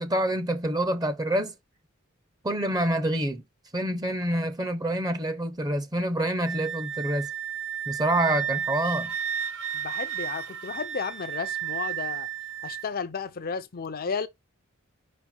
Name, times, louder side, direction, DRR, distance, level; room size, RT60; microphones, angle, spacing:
voice 1, 0.0-1.5 2.4-3.4 3.7-7.3 7.9-9.2, right 1 dB, 20° right, 0.7 m, -27 dB
Wind instrument woodwind instrument, 6.4-12.8, right 9 dB, 60° right, 1.0 m, -32 dB
voice 2, 9.7-12.3 12.6-14.3, left 5 dB, 45° left, 0.6 m, -33 dB
5.4 x 4.2 x 4.3 m
head